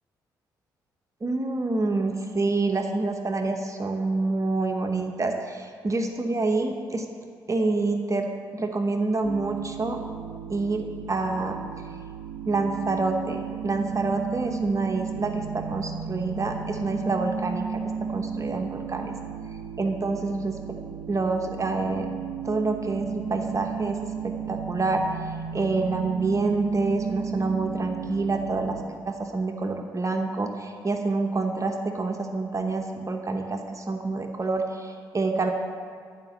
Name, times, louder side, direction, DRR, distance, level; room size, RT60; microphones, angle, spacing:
voice 1, 1.2-7.0 7.5-10.0 10.5-11.6 12.5-19.1 19.8-20.8 21.1-22.1 22.4-25.0 25.5-28.8 29.0-35.5, right 3 dB, 35° right, 4 dB, 1.0 m, -27 dB
sound 1, 9.2-28.9, right 7 dB, 80° right, 0.5 m, -35 dB
11.5 x 5.2 x 7.1 m, 2.1 s
supercardioid pair, 50°, 9 cm